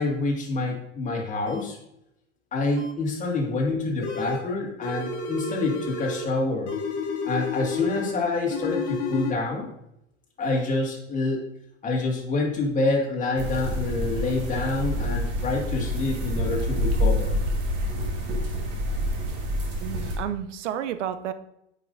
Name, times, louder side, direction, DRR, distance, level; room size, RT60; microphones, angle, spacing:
voice 1, 0.0-1.8 2.5-6.7 7.2-9.7 10.4-11.4 11.8-17.4, left 3 dB, 20° left, -2 dB, 1.9 m, -27 dB
sound 1, 1.5-1.6 2.8-2.9 4.1-4.2 5.4-5.5 6.7-6.8, right 2 dB, 25° right, 0.8 m, -44 dB
sound 2, 4.0-4.5 4.8-6.3 6.7-8.2 8.5-9.3, left 4 dB, 70° left, 1.2 m, -30 dB
sound 3, 13.4-20.2, equal, 40° right, 1.6 m, -27 dB
voice 2, 19.8-21.3, right 10 dB, 80° right, 12 dB, 0.7 m, -31 dB
8.4 x 5.4 x 2.6 m, 0.81 s
hypercardioid pair, 115°, 36 cm